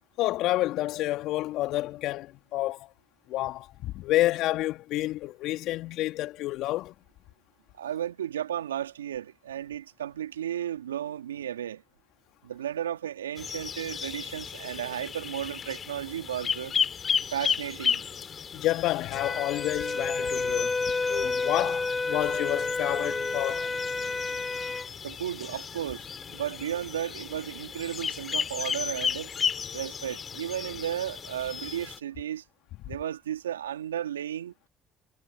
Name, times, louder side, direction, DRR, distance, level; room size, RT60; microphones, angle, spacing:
voice 1, 0.2-2.9 3.3-6.9 18.5-20.8 21.1-23.7 32.9-33.0, left 16 dB, 65° left, 2.7 m, -29 dB
voice 2, 7.7-11.8 12.4-16.7 17.3-18.0 25.0-29.3 29.7-32.4 32.8-34.7, right 10 dB, 85° right, 2.7 m, -34 dB
sound 1, 13.4-32.0, left 7 dB, 45° left, 3.2 m, -34 dB
Wind instrument woodwind instrument, 19.1-24.9, left 3 dB, 25° left, 1.9 m, -30 dB
hypercardioid pair, 50°, 0 cm